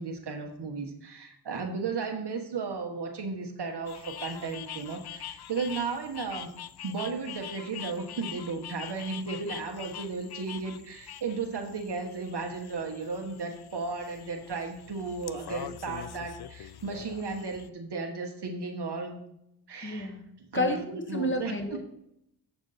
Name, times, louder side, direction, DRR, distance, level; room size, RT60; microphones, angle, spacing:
voice 1, 0.0-6.6 6.8-19.2 19.7-20.1 20.4-21.5, right 4 dB, 75° right, 3 dB, 1.4 m, -35 dB
sound 1, 3.9-17.7, left 10 dB, 65° left, 0.6 m, -44 dB
voice 2, 19.8-21.8, left 1 dB, 30° left, 5 dB, 1.5 m, -31 dB
7.7 x 7.1 x 4.2 m, 0.76 s
cardioid pair, 40°, 40 cm